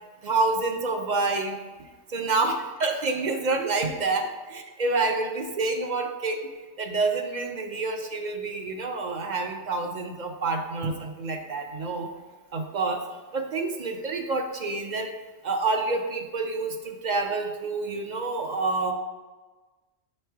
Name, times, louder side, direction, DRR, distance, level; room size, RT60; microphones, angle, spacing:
voice 1, 0.2-1.6 2.1-2.5 2.8-4.3 4.8-6.4 6.8-12.1 12.5-13.0 13.3-15.1 15.4-18.9, right 3 dB, 50° right, 4 dB, 0.6 m, -27 dB
6.9 x 3.3 x 4.5 m, 1.3 s
omnidirectional pair, 1.2 m